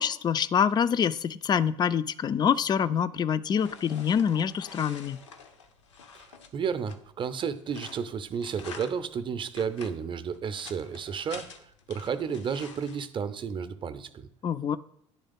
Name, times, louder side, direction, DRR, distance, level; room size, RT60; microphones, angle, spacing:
voice 1, 0.0-5.2 14.4-14.8, left 8 dB, 25° left, 16 dB, 0.4 m, -26 dB
sound 1, 3.6-13.1, left 5 dB, 75° left, 0.7 m, -48 dB
voice 2, 6.5-11.5 11.9-14.3, right 6 dB, 30° right, 12 dB, 0.6 m, -32 dB
10.0 x 3.5 x 5.3 m, 0.74 s
figure-of-eight pair, 60°, 16 cm